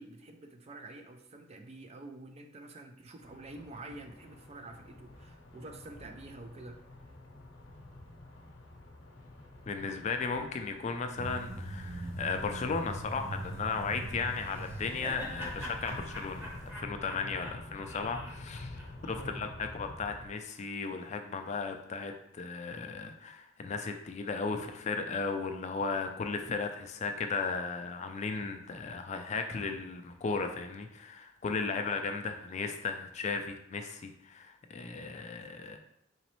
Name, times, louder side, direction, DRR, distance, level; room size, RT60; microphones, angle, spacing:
voice 1, 0.0-6.8 19.2-19.4 31.7-31.9, right 2 dB, 35° right, 5 dB, 0.4 m, -48 dB
sound 1, 3.2-20.3, left 2 dB, 75° left, 0.8 m, -48 dB
voice 2, 9.7-18.8 19.1-35.8, left 4 dB, 35° left, 6 dB, 0.4 m, -35 dB
sound 2, 11.2-16.7, right 1 dB, 80° right, 0.8 m, -42 dB
Laughter, 14.4-19.6, equal, 10° right, 0.9 m, -45 dB
4.0 x 3.0 x 3.0 m, 0.73 s
head